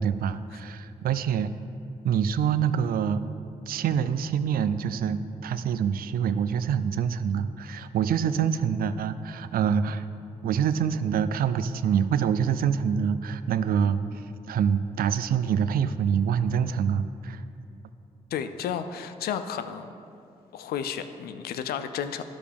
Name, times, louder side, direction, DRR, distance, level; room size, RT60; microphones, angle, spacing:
voice 1, 0.0-1.5 2.0-3.2 3.7-10.0 10.4-14.0 14.5-17.4, right 7 dB, 70° right, 13 dB, 0.4 m, -26 dB
voice 2, 18.3-19.9 20.5-22.2, left 8 dB, 75° left, 10 dB, 0.5 m, -32 dB
10.5 x 6.9 x 3.5 m, 2.5 s
supercardioid pair, 45°, 16 cm